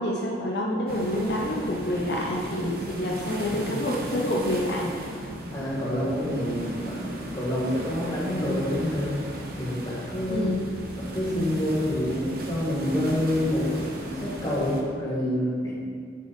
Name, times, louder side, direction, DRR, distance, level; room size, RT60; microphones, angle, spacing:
voice 1, 0.0-5.2 10.3-10.7, left 1 dB, 65° left, -2 dB, 0.6 m, -28 dB
sound 1, 0.9-14.8, right 1 dB, 55° right, 0.8 m, -37 dB
voice 2, 5.5-9.2 9.5-10.5 10.9-13.7 13.9-15.7, left 1 dB, 20° left, -8 dB, 1.6 m, -27 dB
6.4 x 5.4 x 4.1 m, 2.2 s
head